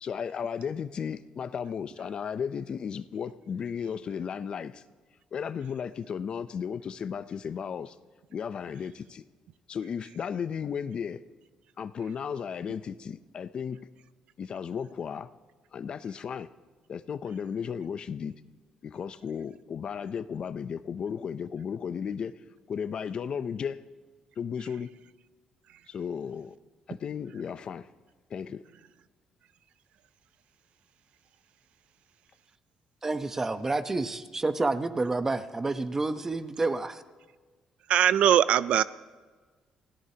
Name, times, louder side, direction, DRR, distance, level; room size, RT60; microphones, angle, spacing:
voice 1, 0.0-4.8 5.3-8.0 8.3-9.2 9.7-11.2 11.8-13.8 14.4-15.3 15.7-16.5 16.9-18.3 18.8-22.4 22.7-23.8 24.4-24.9 25.9-26.5 26.9-27.9 28.3-28.6, left 7 dB, 50° left, 0.6 m, -34 dB
voice 2, 33.0-37.0, right 3 dB, 20° right, 0.9 m, -29 dB
voice 3, 37.9-38.8, right 10 dB, 70° right, 0.4 m, -21 dB
28.5 x 17.0 x 2.9 m
cardioid pair, 110°, 2 cm